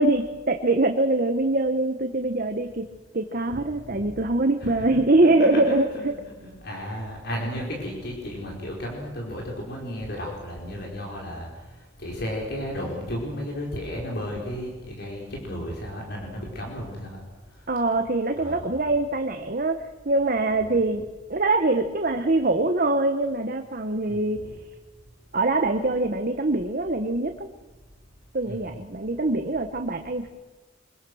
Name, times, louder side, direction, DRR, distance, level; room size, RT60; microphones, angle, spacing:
voice 1, 0.0-2.8 3.1-5.9 17.7-19.8 20.0-21.0 21.3-24.4 25.3-27.5 28.3-30.3, right 2 dB, 45° right, 6 dB, 1.1 m, -23 dB
voice 2, 4.6-6.0 6.6-11.5 12.0-17.2 18.4-18.7 24.1-24.5 28.4-28.7, equal, 55° left, -1 dB, 4.9 m, -33 dB
25.0 x 22.5 x 6.4 m, 1.2 s
head